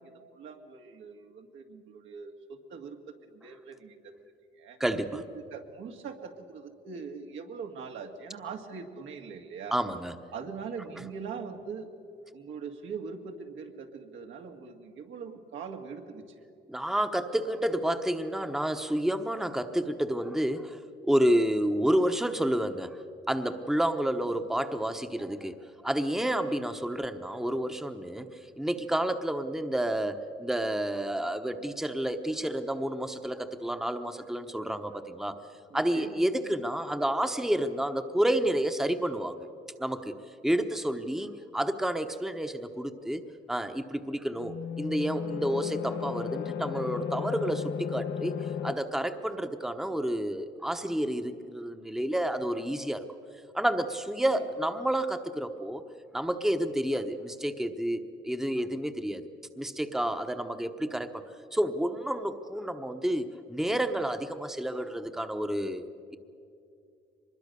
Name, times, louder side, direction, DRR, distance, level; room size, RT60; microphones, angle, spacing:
voice 1, 0.0-3.0 3.3-4.1 4.6-4.8 5.1-5.2 5.5-9.8 10.3-11.9 12.3-16.4 35.7-36.6, right 5 dB, 80° right, 3 dB, 2.1 m, -42 dB
voice 2, 4.8-5.2 9.7-10.1 16.7-23.0 23.3-25.6 25.8-28.3 28.6-35.4 35.7-39.5 39.8-40.2 40.4-43.2 43.5-53.0 53.5-55.8 56.1-59.3 59.6-61.2 61.5-66.2, right 1 dB, ahead, 7 dB, 1.0 m, -30 dB
sound 1, 44.4-48.8, left 7 dB, 65° left, 0.8 m, -34 dB
24.0 x 21.0 x 6.8 m, 2.6 s
cardioid pair, 90°, 20 cm